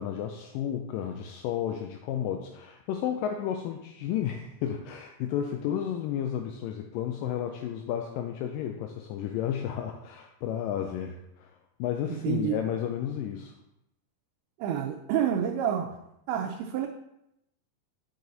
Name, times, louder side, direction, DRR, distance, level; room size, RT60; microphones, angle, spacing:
voice 1, 0.0-11.5 11.8-13.5, left 9 dB, 85° left, 4 dB, 1.9 m, -32 dB
voice 2, 12.2-12.6 14.6-16.0 16.3-16.9, right 9 dB, 85° right, 2 dB, 2.5 m, -28 dB
7.5 x 4.7 x 4.0 m, 0.84 s
omnidirectional pair, 4.4 m